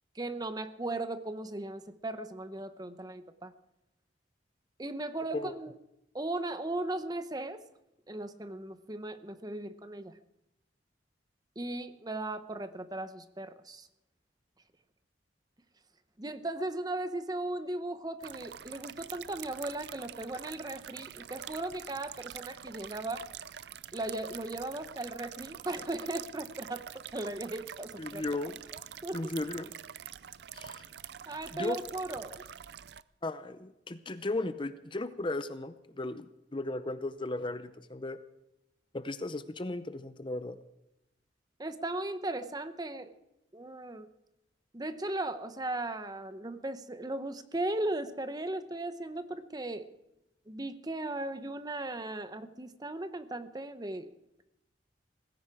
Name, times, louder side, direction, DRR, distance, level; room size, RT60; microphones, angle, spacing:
voice 1, 0.1-3.5 4.8-5.7 6.1-7.6 8.1-10.1 11.6-13.9 16.2-23.3 23.9-28.2 28.7-29.3 31.3-32.4 41.6-43.1 43.5-44.1 44.7-49.9 50.5-54.1, right 2 dB, 20° right, 11 dB, 0.9 m, -37 dB
sound 1, 18.2-33.0, right 9 dB, 60° right, 0.5 m, -46 dB
voice 2, 28.0-28.5 29.1-29.7 30.5-30.8 31.5-31.8 33.2-38.2 38.9-40.6, left 2 dB, 25° left, 12 dB, 0.6 m, -36 dB
18.5 x 16.0 x 4.9 m, 0.87 s
head